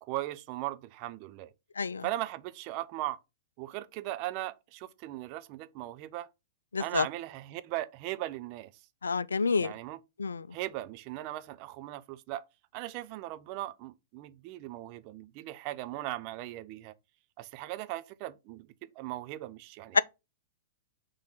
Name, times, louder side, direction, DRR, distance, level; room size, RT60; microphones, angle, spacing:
voice 1, 0.0-1.5 2.0-3.2 3.6-6.3 6.8-8.7 9.6-10.0 10.5-12.5 12.7-16.9 17.4-18.7 19.0-20.0, right 16 dB, 40° right, 0.6 m, -38 dB
voice 2, 6.7-7.1 9.0-9.7 10.2-10.4 19.9-20.0, left 5 dB, 80° left, 0.4 m, -28 dB
5.8 x 3.3 x 5.8 m
figure-of-eight pair, 105°, 0 cm